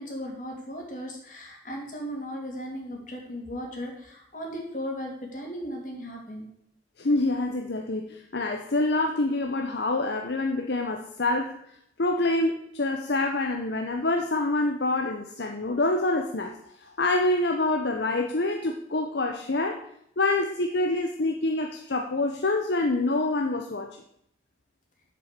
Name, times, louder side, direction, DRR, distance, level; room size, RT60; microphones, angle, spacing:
voice 1, 0.0-6.5, equal, 45° left, 0 dB, 2.8 m, -36 dB
voice 2, 7.0-11.6 12.0-19.8 20.2-23.9, left 2 dB, 65° left, 4 dB, 0.8 m, -26 dB
7.5 x 7.0 x 8.3 m, 0.73 s
head